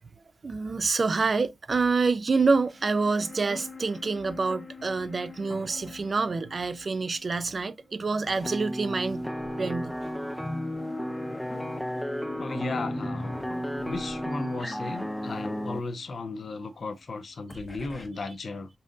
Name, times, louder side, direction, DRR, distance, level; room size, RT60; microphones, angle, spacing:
voice 1, 0.4-9.2 9.6-10.0, right 4 dB, 45° right, 0.4 m, -27 dB
sound 1, 2.4-8.7 9.0-9.1 10.2-17.1 17.5-18.1, left 4 dB, 25° left, 0.8 m, -46 dB
sound 2, 8.3-15.8, equal, 5° left, 0.5 m, -33 dB
voice 2, 12.4-13.4 13.8-18.7, left 3 dB, 60° left, 0.6 m, -35 dB
5.3 x 2.5 x 2.5 m
wide cardioid pair, 100°, 0 cm